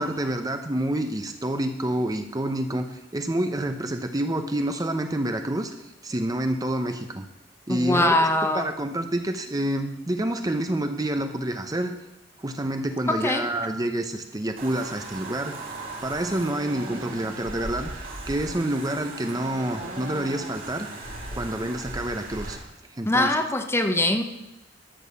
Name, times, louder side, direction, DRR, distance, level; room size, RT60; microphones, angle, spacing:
voice 1, 0.0-5.7 6.0-7.3 7.7-8.3 8.5-12.0 12.4-15.7 16.0-20.9 21.3-22.6 22.9-23.3, right 1 dB, 20° right, 7 dB, 0.7 m, -28 dB
voice 2, 7.7-8.7 13.1-13.5 23.0-24.2, left 1 dB, 15° left, 6 dB, 0.9 m, -22 dB
sound 1, 14.6-22.6, right 2 dB, 50° right, 2.9 m, -37 dB
12.5 x 7.0 x 6.9 m, 0.94 s
head